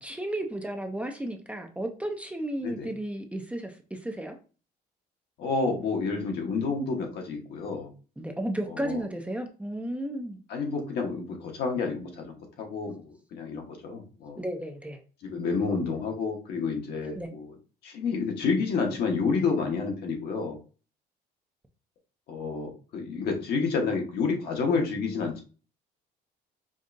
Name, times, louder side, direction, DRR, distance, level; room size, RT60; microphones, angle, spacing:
voice 1, 0.0-4.4 8.2-10.4 14.4-15.0 17.2-17.3, right 1 dB, 10° right, 4 dB, 0.5 m, -33 dB
voice 2, 5.4-7.9 8.7-9.0 10.5-14.4 15.2-17.5 17.8-20.6 22.3-25.4, left 4 dB, 70° left, 1 dB, 1.2 m, -29 dB
5.2 x 2.4 x 2.6 m, 0.36 s
cardioid pair, 110°, 17 cm